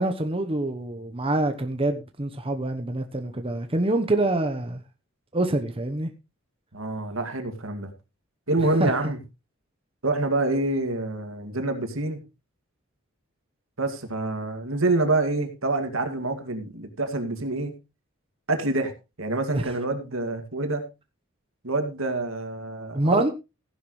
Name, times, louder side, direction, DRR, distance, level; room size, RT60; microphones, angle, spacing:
voice 1, 0.0-4.8 5.3-6.1 8.8-8.9 19.5-19.7 22.9-23.3, right 2 dB, 25° right, 1.0 m, -25 dB
voice 2, 6.7-7.9 8.5-9.2 10.0-12.2 13.8-17.7 18.5-18.9 19.2-20.8 21.6-23.2, right 2 dB, 85° right, 2.3 m, -26 dB
15.5 x 10.5 x 3.2 m
head